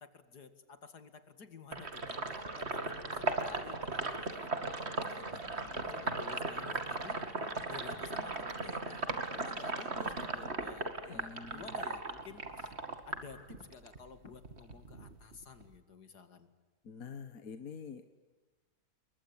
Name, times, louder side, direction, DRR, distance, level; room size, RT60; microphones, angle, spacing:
voice 1, 0.1-7.2 7.7-12.7 13.1-16.5, left 5 dB, 75° left, 10 dB, 2.7 m, -52 dB
Sink (filling or washing), 1.7-14.0 14.3-15.7, right 3 dB, 40° right, 2.6 m, -37 dB
voice 2, 11.1-11.6 16.9-18.1, left 6 dB, 60° left, 9 dB, 1.8 m, -46 dB
29.0 x 23.0 x 8.8 m, 1.3 s
omnidirectional pair, 1.7 m